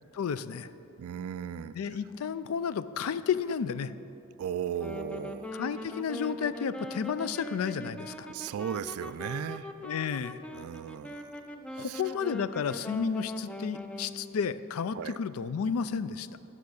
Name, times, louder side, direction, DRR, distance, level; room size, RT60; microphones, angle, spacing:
voice 1, 0.1-0.7 1.7-3.9 5.5-8.3 9.8-10.4 11.8-16.3, left 6 dB, 70° left, 15 dB, 0.4 m, -32 dB
voice 2, 1.0-1.7 4.4-5.6 8.3-9.7 10.5-11.3 11.7-12.0 14.9-15.2, right 8 dB, 70° right, 15 dB, 0.3 m, -36 dB
Wind instrument woodwind instrument, 4.7-14.4, left 1 dB, 5° left, 0.4 m, -41 dB
10.5 x 6.1 x 6.4 m, 2.8 s
head